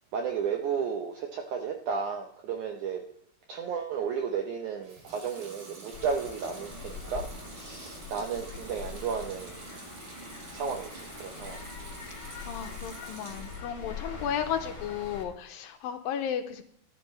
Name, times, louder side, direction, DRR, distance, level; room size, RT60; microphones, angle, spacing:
voice 1, 0.1-3.0 3.5-9.7 10.5-11.7, right 6 dB, 80° right, 3 dB, 1.7 m, -33 dB
Water tap faucet / Sink (filling or washing) / Liquid, 4.8-13.7 14.1-14.8, right 3 dB, 45° right, 2.9 m, -48 dB
sound 1, 5.9-15.2, left 4 dB, 10° left, 2.5 m, -43 dB
voice 2, 12.4-16.7, left 8 dB, 80° left, 6 dB, 2.3 m, -34 dB
14.5 x 10.0 x 3.2 m, 0.68 s
omnidirectional pair, 4.5 m